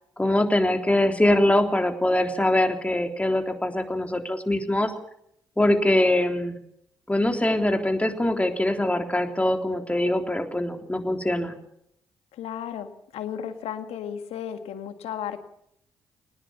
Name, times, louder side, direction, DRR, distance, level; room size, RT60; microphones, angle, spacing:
voice 1, 0.2-4.9 5.6-6.6 7.1-11.5, left 1 dB, 10° left, 4 dB, 3.5 m, -23 dB
voice 2, 12.3-15.4, left 9 dB, 70° left, 9 dB, 1.8 m, -34 dB
20.5 x 19.5 x 7.0 m, 0.73 s
hypercardioid pair, 40°, 11 cm